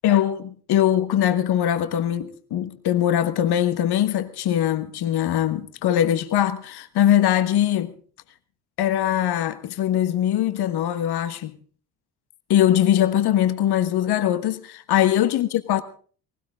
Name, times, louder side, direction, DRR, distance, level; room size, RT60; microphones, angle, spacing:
voice 1, 0.0-7.9 8.8-11.6 12.5-15.8, left 11 dB, 50° left, 1.4 m, -21 dB
19.0 x 17.0 x 3.7 m
hypercardioid pair, 55°, 48 cm